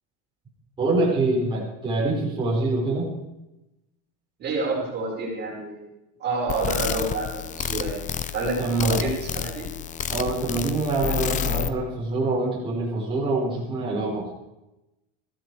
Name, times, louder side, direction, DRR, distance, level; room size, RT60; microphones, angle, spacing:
voice 1, 0.8-3.1 8.6-9.0 10.1-14.3, right 2 dB, 15° right, -6 dB, 5.2 m, -25 dB
voice 2, 4.4-5.8 6.2-8.0 8.3-9.7, right 2 dB, 35° right, -2 dB, 5.6 m, -28 dB
sound 1, 6.5-11.7, left 9 dB, 25° left, 0.7 m, -30 dB
15.0 x 14.0 x 5.0 m, 0.93 s
supercardioid pair, 140°, 30 cm